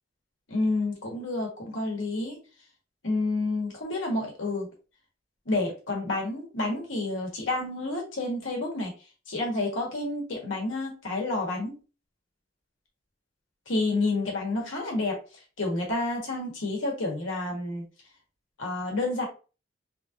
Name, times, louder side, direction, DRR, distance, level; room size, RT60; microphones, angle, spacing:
voice 1, 0.5-2.4 3.0-4.7 5.4-8.9 9.3-11.8 13.7-15.2 15.6-17.8 18.6-19.3, left 2 dB, 90° left, -1 dB, 1.4 m, -29 dB
3.4 x 2.5 x 2.7 m, 0.33 s
head